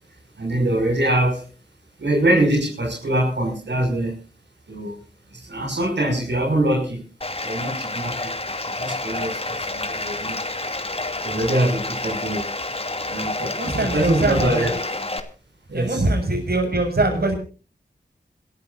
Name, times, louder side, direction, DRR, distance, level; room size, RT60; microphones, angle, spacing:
voice 1, 0.4-1.4 2.0-4.1 4.7-5.0 5.3-7.1 7.4-8.3 8.6-10.4 11.2-12.5 13.1-14.7 15.7-16.1, right 1 dB, 75° right, 0 dB, 6.0 m, -23 dB
Bathtub (filling or washing), 7.2-15.2, left 2 dB, 30° left, 2.6 m, -29 dB
voice 2, 13.6-14.7 15.7-17.4, right 2 dB, 60° right, 4 dB, 6.6 m, -22 dB
27.0 x 13.5 x 2.6 m, 0.36 s
wide cardioid pair, 60°, 18 cm